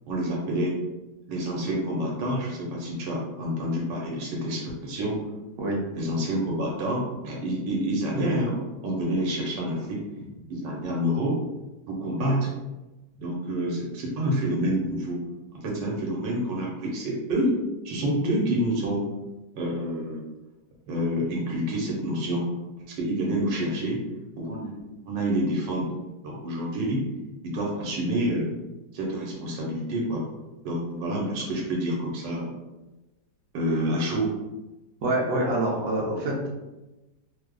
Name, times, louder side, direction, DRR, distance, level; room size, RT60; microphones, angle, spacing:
voice 1, 0.1-0.8 1.3-5.2 5.9-10.0 10.5-11.3 11.9-12.5 13.2-15.2 15.5-17.6 17.8-19.0 19.5-20.2 20.9-22.5 23.0-24.0 24.4-24.8 25.1-25.9 26.2-27.0 27.4-28.5 28.9-30.2 30.6-32.5 33.5-34.3, equal, 90° right, -2 dB, 1.5 m, -28 dB
voice 2, 35.0-36.5, right 1 dB, 65° right, -3 dB, 1.2 m, -26 dB
3.1 x 2.0 x 3.6 m, 1.1 s
omnidirectional pair, 1.9 m